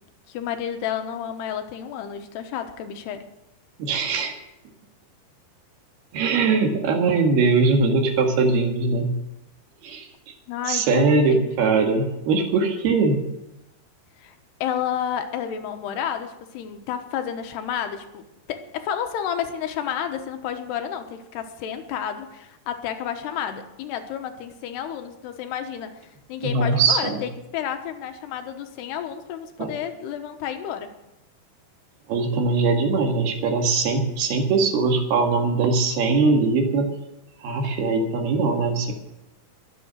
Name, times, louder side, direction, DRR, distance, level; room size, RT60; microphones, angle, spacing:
voice 1, 0.3-3.2 10.5-11.5 14.2-14.3 14.6-25.9 26.3-30.9, left 9 dB, 85° left, 7 dB, 3.2 m, -31 dB
voice 2, 3.8-4.3 6.1-9.1 9.8-10.1 10.6-13.2 26.4-27.2 29.6-29.7 32.1-36.9 37.4-38.9, right 4 dB, 70° right, 3 dB, 3.8 m, -21 dB
22.0 x 8.6 x 6.3 m, 0.92 s
omnidirectional pair, 4.7 m